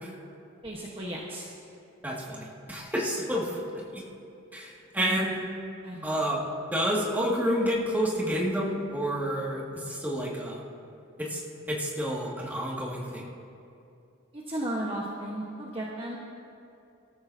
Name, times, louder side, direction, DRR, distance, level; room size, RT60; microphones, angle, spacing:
voice 1, 0.6-1.4 4.9-5.2 5.8-6.0 14.3-16.2, right 1 dB, 25° right, -4 dB, 1.3 m, -34 dB
voice 2, 2.0-4.0 4.5-5.4 6.0-6.4 6.7-10.6 11.2-11.4 11.7-13.2, equal, 10° right, -4 dB, 2.1 m, -29 dB
25.0 x 13.5 x 2.8 m, 2.7 s
head